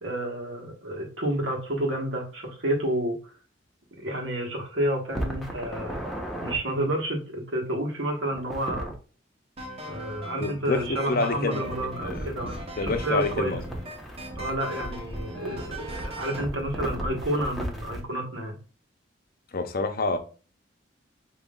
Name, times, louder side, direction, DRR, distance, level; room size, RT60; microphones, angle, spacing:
voice 1, 0.0-3.2 4.0-6.0 6.4-8.9 9.8-12.6 12.8-13.5 14.4-18.6, right 1 dB, 80° right, 1.4 m, -30 dB
sound 1, 5.1-6.6 8.3-9.0 11.6-18.0, equal, ahead, 0.9 m, -36 dB
sound 2, 9.6-16.5, right 1 dB, 35° right, 0.9 m, -40 dB
voice 2, 10.4-11.6 12.0-12.4 12.8-13.6 19.5-20.2, left 3 dB, 50° left, 0.7 m, -28 dB
5.4 x 2.9 x 2.4 m
head